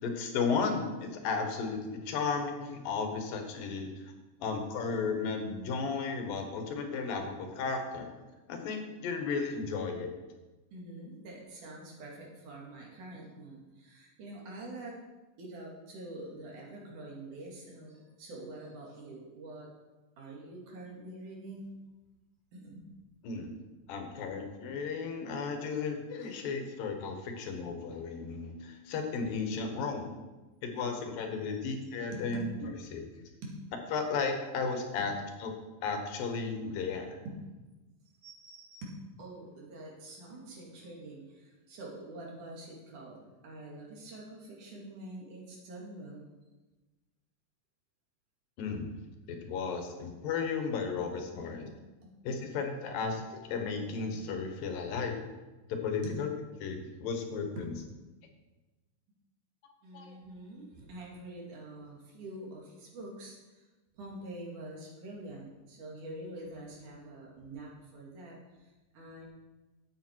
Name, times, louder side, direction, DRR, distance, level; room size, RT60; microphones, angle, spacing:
voice 1, 0.0-3.9 4.4-8.1 8.5-10.1 23.2-23.5 23.9-30.1 30.6-33.0 33.9-35.1 35.4-35.5 35.8-37.2 48.6-48.9 49.3-51.7 52.2-53.2 53.5-55.2 55.8-56.3 56.6-57.5 59.9-60.2, left 5 dB, 85° left, 4 dB, 3.1 m, -34 dB
voice 2, 10.7-15.0 15.4-19.7 20.2-21.8 22.5-22.9 26.2-26.4 31.4-31.7 32.1-32.5 33.0-33.1 33.4-33.6 35.0-35.1 37.3-37.4 38.1-46.3 51.3-52.1 52.4-52.5 54.1-54.2 56.0-56.2 57.6-57.7 59.8-63.7 63.9-69.3, right 1 dB, 65° right, -2 dB, 3.6 m, -46 dB
12.0 x 8.2 x 4.6 m, 1.1 s
omnidirectional pair, 3.9 m